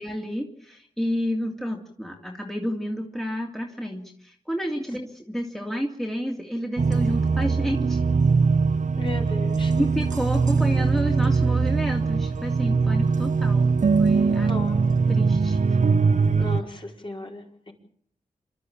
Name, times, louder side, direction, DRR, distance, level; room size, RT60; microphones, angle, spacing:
voice 1, 0.0-8.0 9.8-13.7 14.0-14.6 15.1-15.8, equal, ahead, 1 dB, 2.9 m, -30 dB
sound 1, 6.8-16.6, right 4 dB, 60° right, 1.1 m, -21 dB
voice 2, 9.0-9.7 14.2-14.8 16.1-17.7, left 2 dB, 35° left, 1 dB, 5.1 m, -36 dB
27.0 x 12.5 x 9.0 m, 0.63 s
cardioid pair, 60°, 14 cm